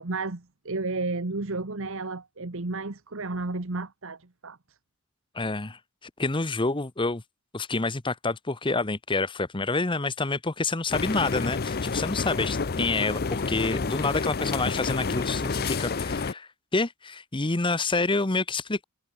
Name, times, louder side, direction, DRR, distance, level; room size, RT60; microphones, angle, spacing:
voice 1, 0.0-4.8, right 3 dB, 60° right, 1.3 m, -32 dB
voice 2, 5.3-7.2 7.5-18.8, left 3 dB, 20° left, 0.9 m, -28 dB
sound 1, 10.9-16.3, left 4 dB, 45° left, 0.6 m, -29 dB
head